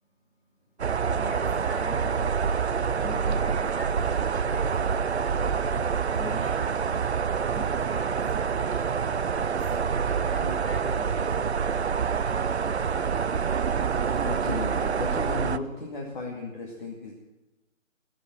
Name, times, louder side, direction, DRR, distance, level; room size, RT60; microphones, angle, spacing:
sound 1, 0.8-15.6, right 6 dB, 60° right, 0.6 m, -26 dB
voice 1, 1.1-2.3 2.9-5.3 5.6-5.7 6.1-6.7 7.1-9.0 9.3-9.5 9.9-12.1, left 3 dB, 15° left, -7 dB, 6.4 m, -44 dB
voice 2, 12.6-13.1 14.2-17.1, left 2 dB, 40° left, -1 dB, 2.2 m, -35 dB
17.0 x 7.6 x 8.9 m, 1.0 s
figure-of-eight pair, 145°, 38 cm